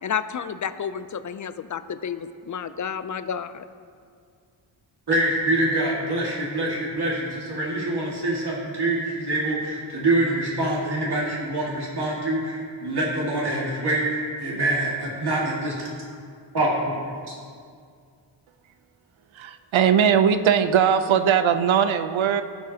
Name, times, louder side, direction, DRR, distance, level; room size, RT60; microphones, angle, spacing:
voice 1, 0.0-3.6, left 7 dB, 40° left, 12 dB, 0.4 m, -31 dB
voice 2, 5.1-15.8 16.5-17.3, right 1 dB, 55° right, -5 dB, 2.0 m, -25 dB
voice 3, 19.3-22.4, right 8 dB, 75° right, 10 dB, 0.6 m, -20 dB
16.5 x 6.1 x 2.8 m, 2.2 s
wide cardioid pair, 85°, 47 cm